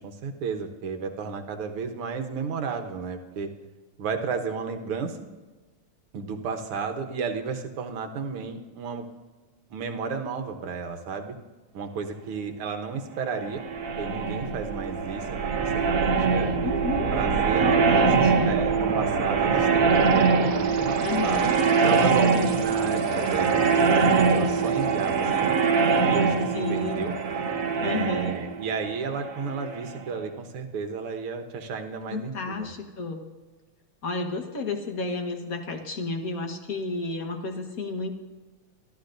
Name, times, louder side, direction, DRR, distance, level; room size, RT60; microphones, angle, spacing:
voice 1, 0.0-3.5 4.0-5.3 6.1-9.1 9.7-11.3 11.7-13.6 14.0-16.5 17.1-21.4 21.8-25.6 26.1-27.1 27.8-32.7, right 5 dB, 80° right, 5 dB, 2.0 m, -33 dB
sound 1, 13.4-30.0, right 5 dB, 55° right, 1.0 m, -23 dB
voice 2, 16.6-17.1 17.6-18.5 21.0-21.5 26.5-27.1 27.8-28.4 32.1-33.2 34.0-38.1, left 3 dB, 45° left, 4 dB, 1.6 m, -31 dB
25.0 x 13.5 x 2.7 m, 1.3 s
omnidirectional pair, 2.4 m